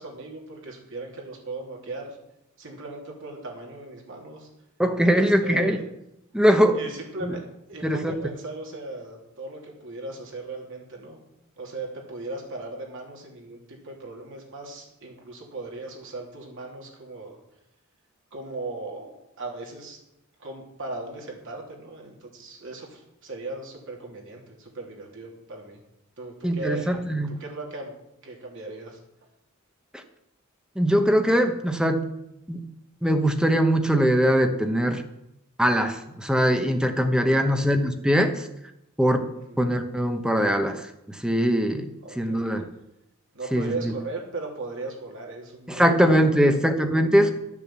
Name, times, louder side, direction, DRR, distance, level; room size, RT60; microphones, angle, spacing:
voice 1, 0.0-2.2 2.6-4.5 5.1-5.8 6.7-7.4 7.7-11.2 11.6-17.4 18.3-20.0 20.4-25.8 26.2-27.9 28.2-29.0 37.3-37.7 39.3-39.6 42.0-42.6 43.3-47.3, right 2 dB, 60° right, 0 dB, 3.2 m, -38 dB
voice 2, 4.8-5.8 6.3-6.8 7.2-7.3 7.8-8.1 26.4-27.3 30.8-32.0 32.5-32.6 33.0-35.0 35.6-38.5 39.0-39.2 39.6-40.8 41.2-41.9 42.2-42.7 43.5-43.9 45.7-47.3, equal, 5° right, 7 dB, 1.0 m, -21 dB
12.0 x 7.1 x 7.4 m, 0.84 s
head